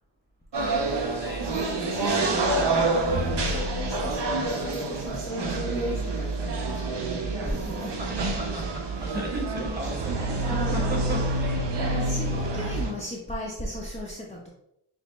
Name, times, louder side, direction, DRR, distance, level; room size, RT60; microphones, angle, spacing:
voice 1, 0.5-1.6 1.8-2.5 7.5-11.5, right 1 dB, 20° right, -1 dB, 1.6 m, -35 dB
sound 1, 0.5-12.9, right 2 dB, 55° right, 0.9 m, -27 dB
voice 2, 1.4-7.2 7.4-7.9 10.0-11.0 11.8-14.5, left 1 dB, 15° left, -4 dB, 0.8 m, -37 dB
6.4 x 2.2 x 3.1 m, 0.77 s
cardioid pair, 60°, 50 cm